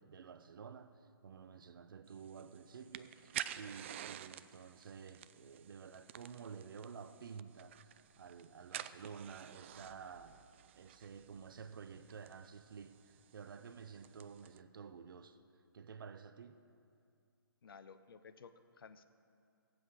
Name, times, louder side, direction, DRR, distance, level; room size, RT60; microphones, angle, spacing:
voice 1, 0.0-10.4 10.8-15.4 15.7-16.6, right 6 dB, 65° right, 0.7 m, -51 dB
sound 1, 2.1-14.6, right 11 dB, 30° right, 0.3 m, -51 dB
voice 2, 17.6-19.0, left 6 dB, 65° left, 0.8 m, -56 dB
21.0 x 7.8 x 4.9 m
hypercardioid pair, 150°, 13 cm